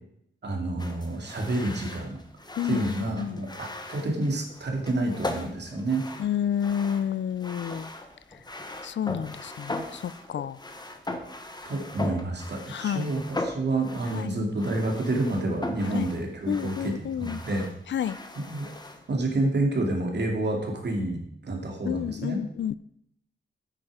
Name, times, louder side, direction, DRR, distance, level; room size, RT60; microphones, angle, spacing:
voice 1, 0.4-2.2 2.6-6.0 9.1-9.2 11.6-17.7 18.0-18.7 19.1-22.4, right 2 dB, 60° right, 2.4 m, -29 dB
sound 1, 0.8-19.1, left 2 dB, 20° left, 1.2 m, -39 dB
voice 2, 2.6-3.4 6.2-7.9 8.8-10.6 12.7-13.1 14.2-14.4 15.9-16.1 16.5-17.4 17.9-18.2 21.9-22.7, left 9 dB, 70° left, 0.4 m, -30 dB
8.9 x 8.9 x 4.9 m
cardioid pair, 80°, 20 cm